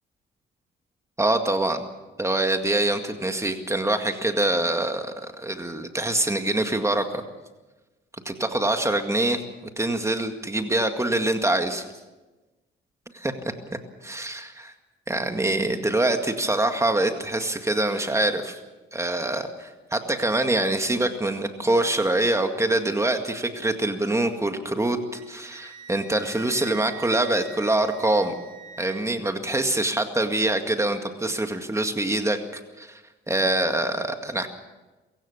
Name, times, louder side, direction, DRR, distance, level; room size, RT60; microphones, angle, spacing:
voice 1, 1.2-1.9 2.2-7.2 8.3-9.4 9.8-11.9 13.1-13.5 14.0-14.7 15.1-18.6 18.9-28.3 28.8-33.0 33.3-34.5, right 2 dB, 15° right, 6 dB, 2.0 m, -25 dB
Wind instrument woodwind instrument, 25.1-29.0, right 6 dB, 90° right, 5.5 m, -44 dB
23.5 x 15.5 x 7.2 m, 1.1 s
cardioid pair, 90°, 20 cm